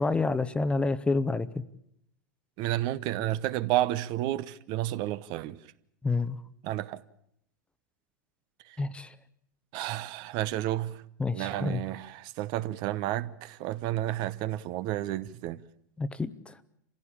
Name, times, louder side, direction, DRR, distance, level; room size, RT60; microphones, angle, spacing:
voice 1, 0.0-1.5 6.0-6.4 8.8-9.1 11.2-11.8 16.0-16.3, left 3 dB, 10° left, 0.9 m, -28 dB
voice 2, 2.6-5.6 6.6-7.0 9.7-11.0 11.3-15.6, right 14 dB, 50° right, 0.9 m, -31 dB
26.0 x 16.0 x 8.7 m
hypercardioid pair, 115°, 10 cm